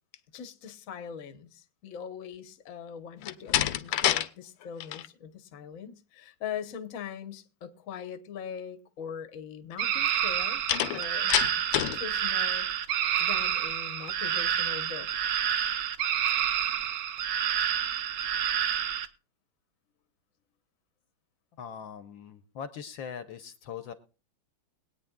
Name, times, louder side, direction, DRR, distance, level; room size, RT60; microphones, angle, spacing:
voice 1, 0.3-10.6 10.9-11.3 11.7-15.1, left 8 dB, 50° left, 1.1 m, -41 dB
Slam, 3.2-4.3 4.6-5.1 10.7-12.0, left 12 dB, 85° left, 1.6 m, -27 dB
sound 1, 9.8-19.1, right 9 dB, 65° right, 1.2 m, -29 dB
voice 2, 21.6-23.9, left 7 dB, 70° left, 1.4 m, -41 dB
22.5 x 9.1 x 2.3 m
omnidirectional pair, 2.4 m